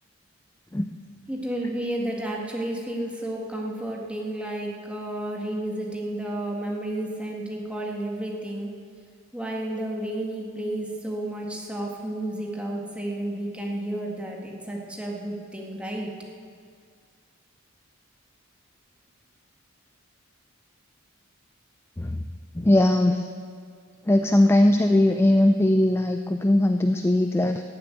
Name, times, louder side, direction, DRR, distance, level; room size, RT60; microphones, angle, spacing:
voice 1, 1.3-8.7 9.3-16.1, right 1 dB, 5° right, -2 dB, 1.8 m, -31 dB
voice 2, 22.5-23.3 24.1-27.6, left 1 dB, 10° left, 7 dB, 0.4 m, -20 dB
15.0 x 7.9 x 9.4 m, 2.1 s
head